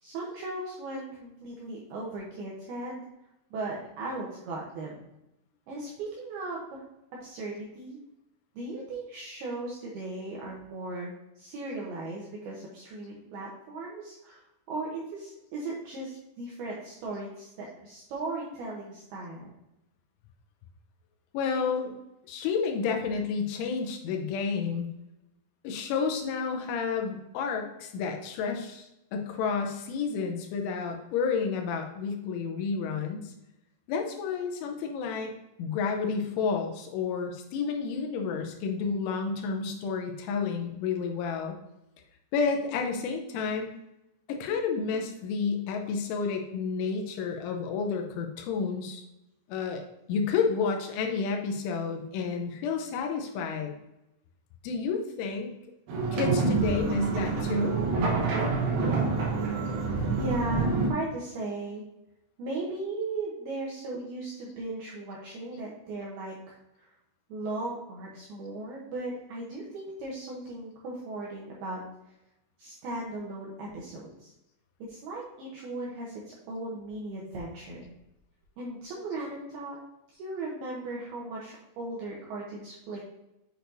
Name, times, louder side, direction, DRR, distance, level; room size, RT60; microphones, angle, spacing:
voice 1, 0.0-3.1 3.5-5.0 5.7-6.8 7.1-8.0 8.6-19.5 38.0-38.5 60.2-61.8 62.4-66.9 67.3-71.8 72.6-74.3 74.9-77.9 78.6-79.8 80.1-83.0, right 2 dB, 85° right, -4 dB, 2.2 m, -37 dB
voice 2, 21.3-21.9 22.3-24.9 25.6-33.3 33.9-35.3 35.6-41.5 42.3-43.7 44.3-49.0 49.5-49.8 50.1-53.7 54.6-55.5 56.1-57.8, left 5 dB, 80° left, 3 dB, 3.0 m, -30 dB
sound 1, 55.9-60.9, right 4 dB, 70° right, 2.4 m, -27 dB
7.9 x 6.3 x 2.7 m, 0.89 s
omnidirectional pair, 5.9 m